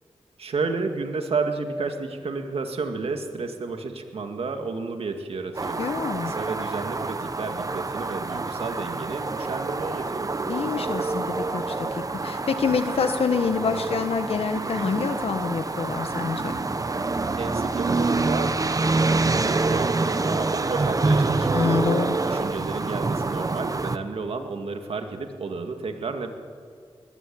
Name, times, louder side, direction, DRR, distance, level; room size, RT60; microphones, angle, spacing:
voice 1, 0.4-5.8 6.2-10.3 17.4-21.6 22.2-26.3, right 4 dB, 80° right, 5 dB, 2.2 m, -31 dB
sound 1, 5.5-24.0, right 3 dB, 35° right, 1.0 m, -26 dB
voice 2, 5.8-6.3 10.5-16.5 21.5-22.2, left 5 dB, 85° left, 7 dB, 1.6 m, -26 dB
21.5 x 20.0 x 8.8 m, 2.1 s
wide cardioid pair, 75°, 10 cm